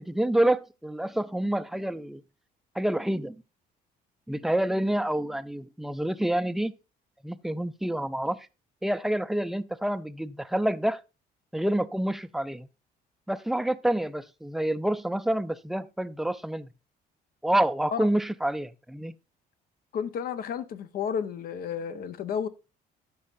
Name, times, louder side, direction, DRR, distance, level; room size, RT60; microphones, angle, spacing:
voice 1, 0.0-2.2 2.7-3.4 4.3-6.7 7.2-8.5 8.8-11.0 11.5-12.7 13.3-16.7 17.4-19.2, right 1 dB, ahead, 0.4 m, -28 dB
voice 2, 19.9-22.5, left 7 dB, 60° left, 0.8 m, -32 dB
12.5 x 5.5 x 2.5 m
cardioid pair, 110°, 17 cm